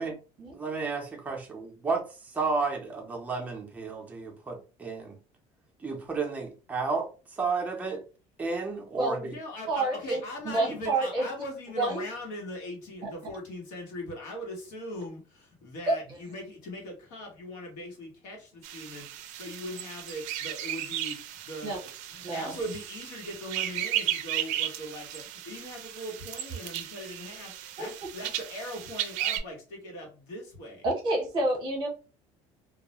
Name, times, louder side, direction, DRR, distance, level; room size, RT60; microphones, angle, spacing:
voice 1, 0.5-5.1 5.8-7.1 7.4-8.0 8.4-9.4, right 4 dB, 10° right, 1 dB, 0.5 m, -32 dB
voice 2, 9.2-30.8, left 1 dB, 90° left, 1 dB, 1.1 m, -40 dB
voice 3, 9.7-11.2 11.8-12.0 15.9-16.0 21.6-21.8 22.2-22.5 27.8-27.9 30.8-31.9, right 2 dB, 35° right, 0 dB, 0.8 m, -28 dB
sound 1, 18.6-29.4, right 12 dB, 75° right, 0.4 m, -35 dB
2.3 x 2.0 x 2.9 m, 0.34 s
cardioid pair, 165°, 13 cm